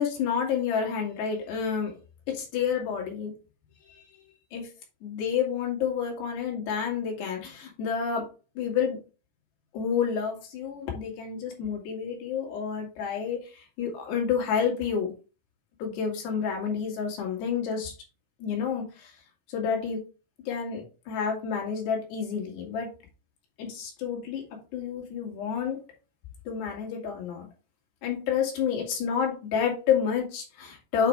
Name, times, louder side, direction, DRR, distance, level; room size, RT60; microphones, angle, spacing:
voice 1, 0.0-2.0 2.3-3.3 3.9-4.1 4.5-4.7 5.0-8.3 8.6-9.0 9.7-15.1 15.8-17.9 18.4-19.2 19.5-20.0 20.5-22.9 23.6-25.8 26.5-27.5 28.0-31.1, left 7 dB, 60° left, 0 dB, 4.2 m, -29 dB
8.9 x 5.0 x 3.4 m, 0.32 s
omnidirectional pair, 5.9 m